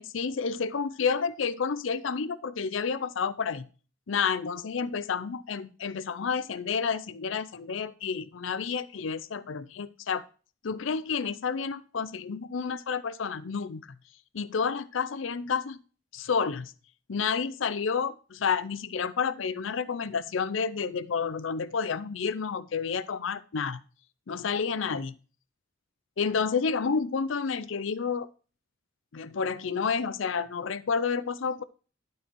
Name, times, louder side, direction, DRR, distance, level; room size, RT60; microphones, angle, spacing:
voice 1, 0.0-3.7 4.1-10.2 10.6-14.0 14.3-15.8 16.1-16.7 17.1-23.8 24.3-25.1 26.2-28.3 29.1-31.6, left 5 dB, 75° left, 15 dB, 0.5 m, -30 dB
12.0 x 4.7 x 4.5 m, 0.36 s
head